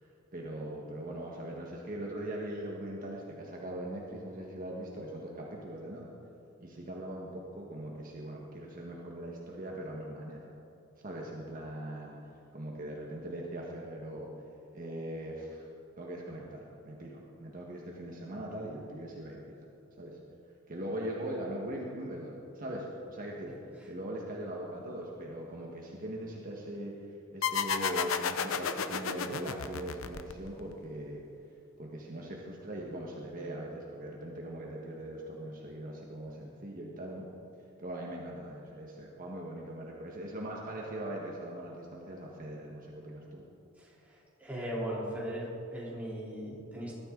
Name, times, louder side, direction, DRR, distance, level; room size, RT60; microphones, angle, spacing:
voice 1, 0.0-6.1 6.6-10.5 11.0-14.3 14.7-15.7 16.0-19.5 20.0-20.2 20.7-23.6 23.8-31.2 31.8-37.3 37.8-43.4, right 1 dB, 40° right, -2 dB, 1.5 m, -41 dB
sound 1, 27.4-30.7, left 6 dB, 80° left, 0.7 m, -32 dB
voice 2, 44.4-46.9, equal, 5° right, -6 dB, 3.7 m, -37 dB
21.0 x 13.0 x 3.9 m, 2.8 s
head